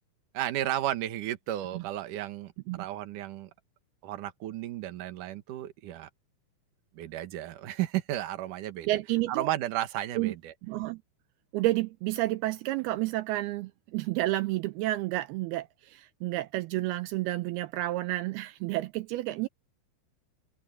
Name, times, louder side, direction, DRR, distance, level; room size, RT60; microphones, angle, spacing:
voice 1, 0.3-3.5 4.0-6.1 6.9-8.9 9.3-10.5, right 13 dB, 65° right, 2.3 m, -33 dB
voice 2, 8.9-9.5 10.2-10.3 10.7-11.0 11.5-19.5, right 17 dB, 85° right, 2.2 m, -30 dB
open air
omnidirectional pair, 5.3 m